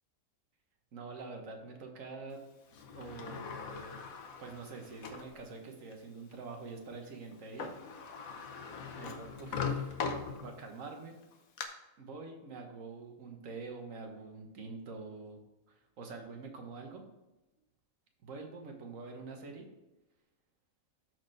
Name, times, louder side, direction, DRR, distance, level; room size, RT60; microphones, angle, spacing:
voice 1, 0.9-2.4 2.9-4.1 4.4-7.7 8.4-8.5 8.9-10.0 10.4-11.2 12.0-15.4 15.7-17.0 18.2-19.7, right 4 dB, 70° right, 3 dB, 1.5 m, -46 dB
Sliding door, 2.7-5.3 5.9-6.0 7.3-7.4 7.6-10.8 11.2-11.6, left 6 dB, 85° left, 1.3 m, -40 dB
12.5 x 4.4 x 3.3 m, 1.0 s
omnidirectional pair, 1.4 m